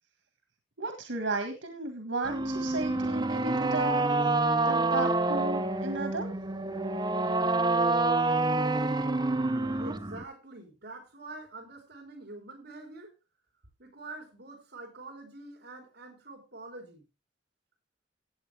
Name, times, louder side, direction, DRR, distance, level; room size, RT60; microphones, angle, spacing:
voice 1, 0.8-4.1 4.7-6.3, right 3 dB, 90° right, 1.7 m, -34 dB
sound 1, 2.3-10.2, right 2 dB, 25° right, 0.8 m, -27 dB
voice 2, 9.8-13.1 13.8-17.0, right 2 dB, 60° right, 4.2 m, -46 dB
16.5 x 8.1 x 3.4 m
head